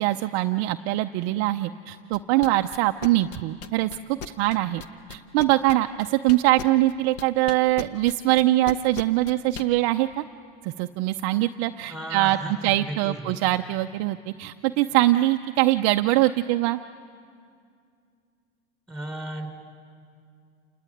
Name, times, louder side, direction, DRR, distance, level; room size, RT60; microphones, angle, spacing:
voice 1, 0.0-4.8 5.1-10.2 10.6-12.4 12.6-16.8, right 16 dB, 40° right, 6 dB, 0.6 m, -23 dB
sound 1, 2.1-9.7, left 6 dB, 40° left, 1.1 m, -37 dB
voice 2, 11.9-13.4 18.9-19.5, right 1 dB, ahead, 3 dB, 3.6 m, -35 dB
28.0 x 19.5 x 9.8 m, 2.3 s
supercardioid pair, 135°, 34 cm